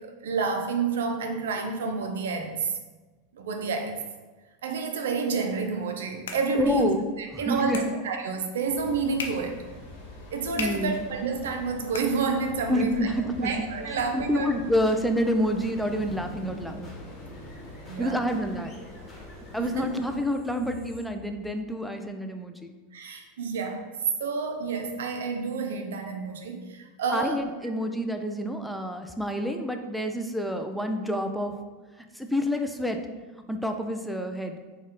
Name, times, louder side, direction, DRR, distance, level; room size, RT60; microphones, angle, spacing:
voice 1, 0.0-2.7 3.3-4.0 4.6-6.9 7.2-9.7 10.3-13.1 13.4-14.5 17.9-18.2 19.6-19.9 22.9-23.8 24.2-27.4, right 4 dB, 75° right, 5 dB, 0.5 m, -29 dB
sound 1, 5.7-12.8, left 5 dB, 80° left, 0.4 m, -42 dB
voice 2, 6.5-7.0 7.3-7.8 10.6-11.1 12.7-13.5 14.1-16.9 18.0-18.7 19.5-22.7 27.1-31.5 32.1-33.1 33.5-34.6, equal, ahead, 5 dB, 0.4 m, -28 dB
Authentic Street Sound Cambodia, 8.7-20.2, left 2 dB, 65° left, 1.1 m, -46 dB
sound 2, 13.1-21.8, left 1 dB, 25° left, 1.1 m, -45 dB
4.3 x 2.3 x 3.6 m, 1.3 s
hypercardioid pair, 95°, 0 cm